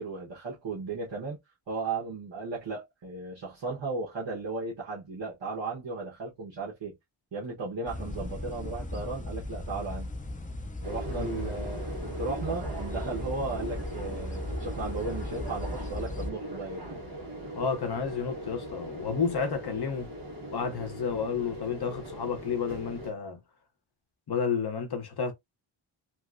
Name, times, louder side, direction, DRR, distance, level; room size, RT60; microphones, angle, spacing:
voice 1, 0.0-1.4 1.7-6.9 7.3-10.1 10.8-17.0, right 3 dB, 60° right, 1.1 m, -35 dB
sound 1, 7.9-16.3, left 1 dB, 20° left, 0.4 m, -37 dB
sound 2, 10.8-23.1, right 1 dB, 45° right, 1.3 m, -40 dB
voice 2, 11.1-11.9 17.5-20.1 20.5-23.4 24.3-25.3, left 6 dB, 55° left, 0.8 m, -31 dB
3.0 x 2.9 x 2.5 m
wide cardioid pair, 170°, 48 cm